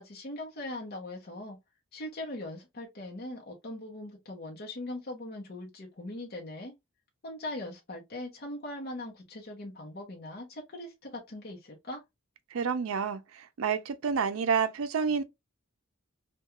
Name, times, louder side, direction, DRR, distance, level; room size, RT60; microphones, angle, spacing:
voice 1, 0.0-1.6 1.9-6.7 7.2-12.0, left 1 dB, 45° left, 0.7 m, -40 dB
voice 2, 12.5-15.2, right 6 dB, 75° right, 0.4 m, -29 dB
2.3 x 2.2 x 2.8 m
head